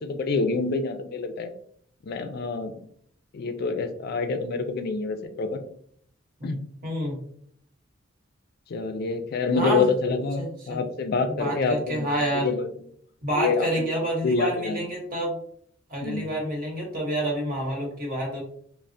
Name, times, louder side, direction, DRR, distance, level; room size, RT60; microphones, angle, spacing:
voice 1, 0.0-1.5 2.1-2.8 3.3-5.6 6.4-6.6 8.7-12.1 12.3-12.7 13.4-13.9 14.2-14.8 16.0-16.3, left 4 dB, 55° left, 7 dB, 0.3 m, -27 dB
voice 2, 6.4-7.2 9.6-9.9 10.4-10.8 11.3-12.5 13.2-15.3 15.9-18.4, right 1 dB, 45° right, -1 dB, 0.9 m, -28 dB
3.2 x 2.0 x 2.5 m, 0.63 s
head